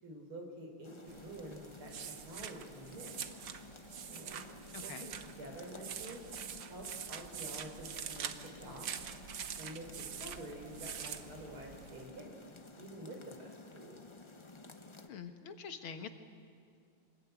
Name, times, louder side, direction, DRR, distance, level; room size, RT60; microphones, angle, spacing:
voice 1, 0.0-3.1 4.1-4.4 4.8-6.2 6.7-8.9 9.6-14.1, right 1 dB, 85° right, 2 dB, 4.8 m, -48 dB
sound 1, 0.8-15.1, left 3 dB, 35° left, 0.4 m, -54 dB
sound 2, 1.1-12.0, right 8 dB, 60° right, 1.5 m, -45 dB
voice 2, 4.7-5.1 15.0-16.2, left 6 dB, 80° left, 7 dB, 2.3 m, -45 dB
24.5 x 20.5 x 9.2 m, 2.3 s
omnidirectional pair, 2.3 m